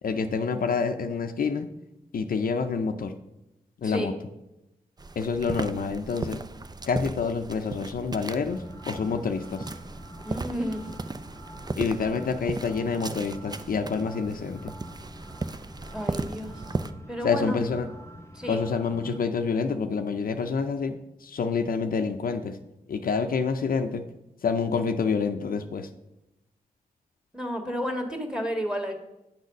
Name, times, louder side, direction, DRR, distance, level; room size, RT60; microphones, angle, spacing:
voice 1, 0.0-1.7 2.1-3.1 3.8-4.1 5.2-6.4 6.9-9.7 11.8-14.7 17.2-17.9 18.5-22.6 22.9-24.0 24.4-25.9, left 5 dB, 70° left, 7 dB, 0.5 m, -27 dB
sound 1, 5.0-16.9, right 3 dB, 25° right, 0.5 m, -36 dB
sound 2, 8.5-19.2, equal, 15° left, 0.8 m, -45 dB
voice 2, 10.2-10.9 15.9-16.6 17.1-17.8 18.3-18.6 27.3-28.9, equal, 5° right, 4 dB, 1.8 m, -31 dB
8.7 x 4.0 x 6.4 m, 0.90 s
cardioid pair, 45°, 16 cm